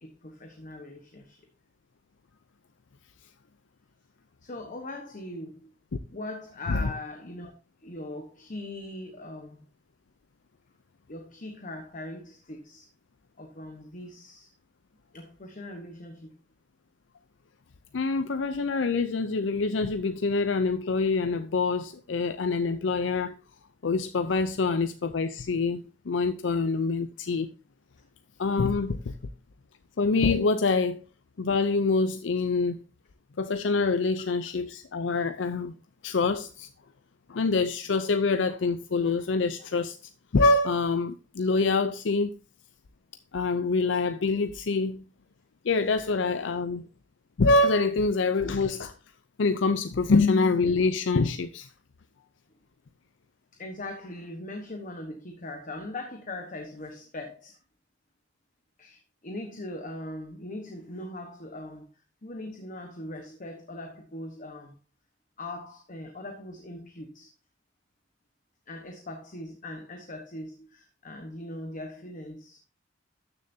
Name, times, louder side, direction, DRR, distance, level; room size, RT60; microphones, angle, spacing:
voice 1, 0.0-1.4 4.4-5.7 6.1-7.5 7.8-9.6 11.1-12.9 13.4-14.5 15.1-16.4 53.6-57.6 58.8-61.9 62.2-64.7 65.4-67.3 68.7-72.6, left 1 dB, 45° left, 1.2 m, -40 dB
voice 2, 17.9-23.4 23.8-25.8 26.1-27.5 28.4-29.1 30.0-31.0 31.4-32.8 33.4-35.7 36.0-36.7 37.3-39.9 40.3-42.3 43.3-45.0 45.6-46.9 47.4-48.9 49.4-51.7, left 3 dB, 80° left, 0.5 m, -25 dB
13.0 x 6.8 x 2.7 m
head